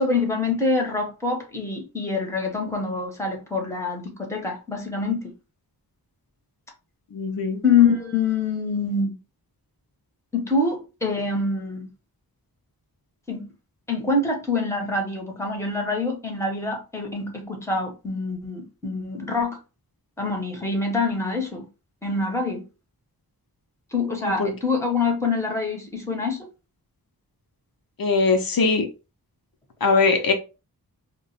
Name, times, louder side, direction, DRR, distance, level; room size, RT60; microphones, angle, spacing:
voice 1, 0.0-5.3 7.6-9.1 10.3-11.9 13.3-13.5 13.9-19.6 20.2-21.7 22.0-22.7 23.9-26.5, left 4 dB, 5° left, 0.9 m, -25 dB
voice 2, 7.1-7.6 24.2-24.5 28.0-28.9 29.8-30.3, left 4 dB, 65° left, 0.6 m, -21 dB
2.3 x 2.2 x 3.9 m
wide cardioid pair, 75°, 38 cm